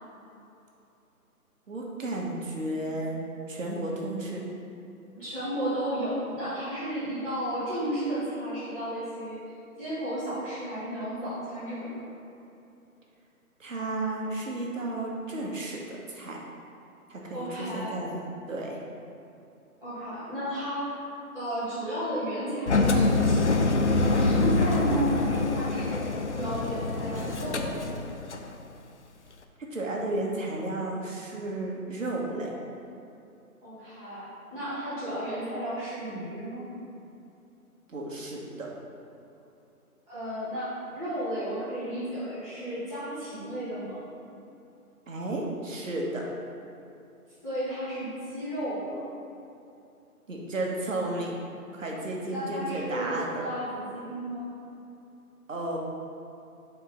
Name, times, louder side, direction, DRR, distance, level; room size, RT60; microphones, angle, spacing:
voice 1, 1.7-4.4 13.6-16.4 17.1-17.5 17.7-18.2 18.5-18.8 29.7-32.5 37.9-38.7 45.1-46.2 50.3-51.3 51.7-53.5 55.5-55.8, right 2 dB, 55° right, -2 dB, 1.3 m, -33 dB
voice 2, 5.1-9.4 9.8-12.0 17.3-18.0 19.8-20.9 21.3-23.4 23.9-26.0 26.4-27.9 33.6-36.6 40.1-44.0 47.4-49.0 52.3-54.5, right 1 dB, 10° left, -20 dB, 1.6 m, -33 dB
Engine, 22.7-28.5, left 3 dB, 50° left, 0.5 m, -25 dB
5.0 x 4.5 x 5.9 m, 2.7 s
figure-of-eight pair, 160°, 45 cm